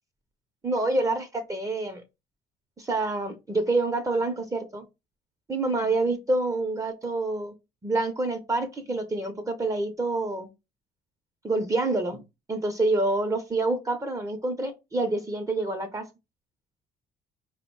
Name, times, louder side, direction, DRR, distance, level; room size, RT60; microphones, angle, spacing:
voice 1, 0.6-2.0 2.8-4.8 5.5-7.5 7.8-10.5 11.4-12.2 12.5-16.1, right 2 dB, 20° right, 7 dB, 0.6 m, -27 dB
4.8 x 2.1 x 4.4 m, 0.25 s
cardioid pair, 110°, 17 cm